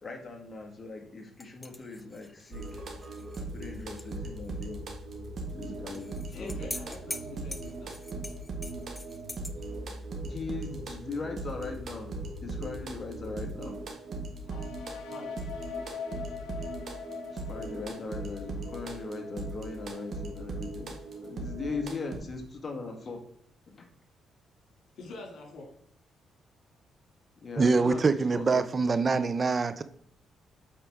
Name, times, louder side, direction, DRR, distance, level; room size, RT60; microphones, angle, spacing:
voice 1, 0.0-2.8 3.4-4.8 5.5-6.1 6.4-6.6 10.2-13.8 17.3-20.9 21.2-23.2 23.7-23.9 27.4-28.7, left 4 dB, 30° left, 1.6 m, -39 dB
sound 1, 1.4-4.2 4.4-4.5 5.9-9.5, left 2 dB, 15° left, 0.6 m, -43 dB
sound 2, 2.5-22.2, right 2 dB, 50° right, 1.6 m, -39 dB
voice 2, 6.3-8.0 14.4-14.7 15.1-15.4 24.9-25.7, left 3 dB, 65° left, 2.5 m, -45 dB
sound 3, 14.5-22.2, left 6 dB, 90° left, 1.0 m, -44 dB
voice 3, 27.6-29.8, right 4 dB, 35° right, 0.4 m, -25 dB
8.5 x 4.4 x 3.5 m
cardioid pair, 90°, 0 cm